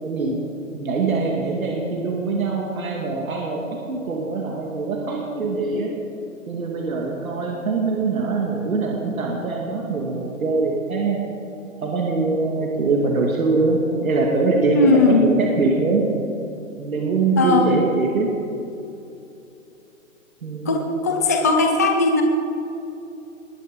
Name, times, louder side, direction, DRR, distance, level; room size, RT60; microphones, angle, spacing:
voice 1, 0.0-0.4 0.7-5.9 6.5-11.3 11.8-16.0 16.8-18.3 20.4-20.8, right 3 dB, 85° right, -1 dB, 2.7 m, -23 dB
voice 2, 14.7-15.2 17.4-17.6 20.7-22.2, left 3 dB, 15° left, 2 dB, 0.4 m, -18 dB
20.5 x 11.0 x 5.4 m, 2.9 s
hypercardioid pair, 160°, 41 cm